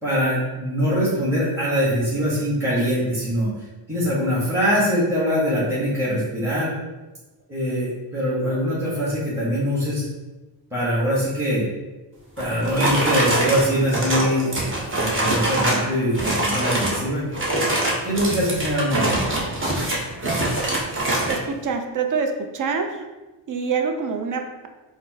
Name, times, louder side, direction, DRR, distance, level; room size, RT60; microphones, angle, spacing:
voice 1, 0.0-3.5 3.9-6.7 7.5-10.0 10.7-11.6 12.4-17.4 18.0-19.0, equal, 5° right, -9 dB, 1.3 m, -23 dB
sound 1, 12.4-15.9 16.1-17.0 17.3-21.4, right 1 dB, 25° right, 1.0 m, -23 dB
voice 2, 21.3-23.1 23.5-24.7, right 5 dB, 40° right, 5 dB, 0.5 m, -26 dB
4.1 x 2.0 x 2.8 m, 1.1 s
supercardioid pair, 60°, 48 cm